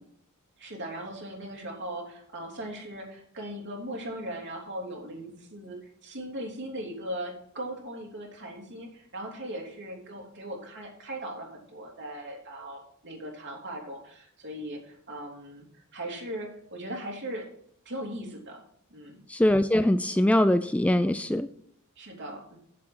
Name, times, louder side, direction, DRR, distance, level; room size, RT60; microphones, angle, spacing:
voice 1, 0.6-17.5 17.8-18.6 18.9-19.2 22.0-22.6, right 1 dB, 55° right, 0 dB, 3.2 m, -39 dB
voice 2, 19.3-21.5, left 1 dB, 5° left, 12 dB, 0.3 m, -22 dB
8.9 x 7.4 x 6.1 m, 0.68 s
head